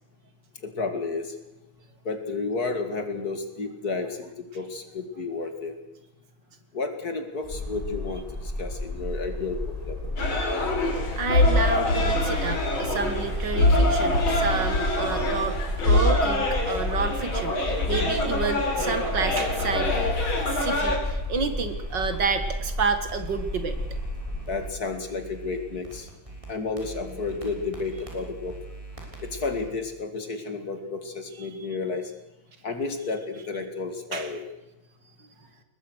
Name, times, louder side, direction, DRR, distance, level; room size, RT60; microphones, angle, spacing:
voice 1, 0.6-1.3 2.0-5.7 6.7-9.6 9.9-10.0 24.5-26.1 26.5-28.6 29.2-32.1 32.6-34.4, left 4 dB, 50° left, 7 dB, 2.8 m, -31 dB
sound 1, 7.4-24.7, left 1 dB, 15° left, 3.7 m, -33 dB
sound 2, 10.2-21.0, left 1 dB, 85° left, 4.5 m, -24 dB
voice 2, 11.2-15.6 15.9-20.0 20.5-23.8 31.4-31.5 34.1-34.3, right 4 dB, 60° right, 9 dB, 2.5 m, -29 dB
sound 3, 20.8-22.7 23.1-29.7, right 3 dB, 15° right, 6.1 m, -44 dB
22.0 x 20.5 x 6.4 m, 0.97 s
omnidirectional pair, 2.2 m